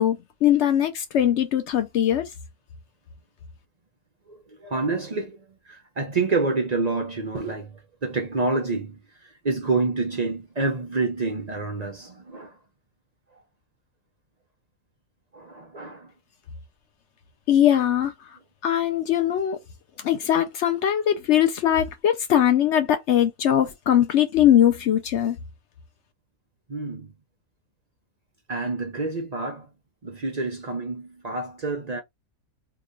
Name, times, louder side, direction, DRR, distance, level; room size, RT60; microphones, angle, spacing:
voice 1, 0.0-2.3 17.5-18.1 18.6-19.6 20.0-25.4, left 10 dB, 65° left, 0.7 m, -21 dB
voice 2, 4.3-12.6 15.3-16.1 26.7-27.1 28.5-29.7 30.0-32.0, right 3 dB, 55° right, 0.4 m, -28 dB
2.9 x 2.3 x 3.7 m
omnidirectional pair, 1.6 m